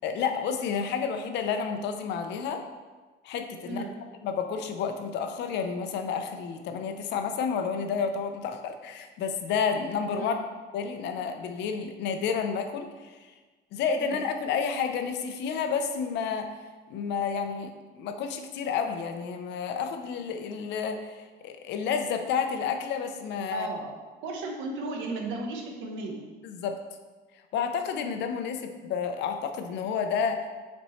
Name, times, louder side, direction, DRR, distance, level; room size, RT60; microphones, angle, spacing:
voice 1, 0.0-2.6 3.2-3.9 4.2-10.3 10.7-13.3 13.7-16.5 16.9-17.7 18.0-23.7 26.4-26.8 27.5-30.5, left 6 dB, 65° left, 6 dB, 0.6 m, -30 dB
voice 2, 23.5-26.3, right 3 dB, 85° right, 2 dB, 1.1 m, -35 dB
7.0 x 4.3 x 3.1 m, 1.3 s
cardioid pair, 155°, 19 cm